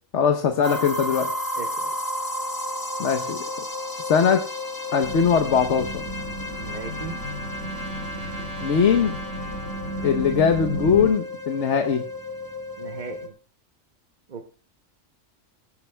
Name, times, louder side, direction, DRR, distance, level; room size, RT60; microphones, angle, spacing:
voice 1, 0.1-1.3 3.0-3.4 4.0-4.4 4.9-6.0 8.6-9.2 10.0-12.0, left 6 dB, 65° left, 6 dB, 1.1 m, -21 dB
sound 1, 0.6-13.3, left 1 dB, 15° left, 1.3 m, -33 dB
voice 2, 1.5-1.9 6.6-7.2 12.8-13.3 14.3-14.5, right 5 dB, 40° right, 4 dB, 0.9 m, -37 dB
sound 2, 5.0-11.1, equal, 85° left, 3.0 m, -34 dB
Trumpet, 5.6-10.3, equal, 60° right, 3.0 m, -42 dB
19.5 x 12.0 x 2.2 m, 0.40 s
omnidirectional pair, 1.4 m